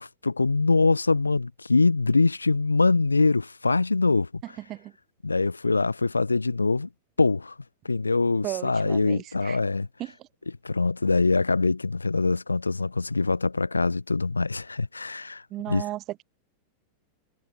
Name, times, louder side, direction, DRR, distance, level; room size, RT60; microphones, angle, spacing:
voice 1, 0.0-4.3 5.2-6.9 7.2-7.5 7.8-9.9 10.6-15.8, left 3 dB, 80° left, 0.7 m, -23 dB
voice 2, 4.6-4.9 8.4-9.6 10.0-10.3 15.5-16.2, right 15 dB, 35° right, 3.0 m, -35 dB
figure-of-eight pair, 90°, 0 cm